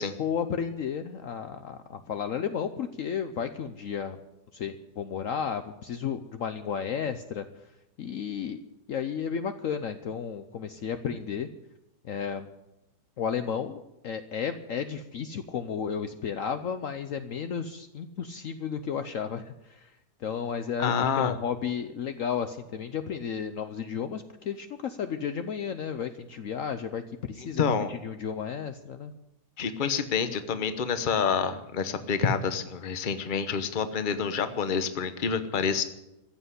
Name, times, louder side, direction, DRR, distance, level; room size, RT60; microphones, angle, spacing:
voice 1, 0.2-4.2 4.5-7.4 8.0-8.6 8.9-11.5 12.0-12.5 13.2-19.9 20.2-29.1, left 7 dB, 60° left, 9 dB, 1.0 m, -33 dB
voice 2, 20.8-21.3 27.3-27.9 29.6-35.8, left 6 dB, 35° left, 11 dB, 1.0 m, -28 dB
14.5 x 8.0 x 9.8 m, 0.91 s
omnidirectional pair, 1.7 m